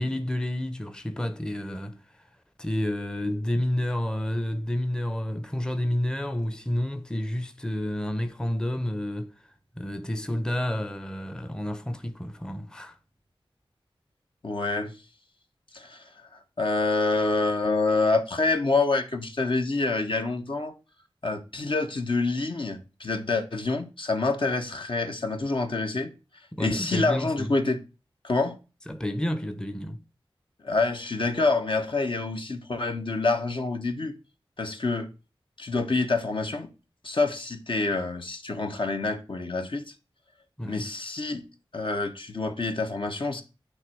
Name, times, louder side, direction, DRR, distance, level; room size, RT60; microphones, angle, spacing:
voice 1, 0.0-2.0 2.6-9.3 9.8-13.0 26.5-27.5 28.9-30.0 40.6-40.8, left 1 dB, 10° left, 0.6 m, -30 dB
voice 2, 14.4-15.0 15.7-16.0 16.6-20.7 21.2-26.1 26.6-27.8 28.2-28.6 30.6-34.1 34.6-35.1 35.6-36.7 37.0-39.9 40.6-41.4 41.7-43.4, left 3 dB, 60° left, 1.2 m, -27 dB
9.3 x 3.4 x 6.0 m
wide cardioid pair, 75°, 9 cm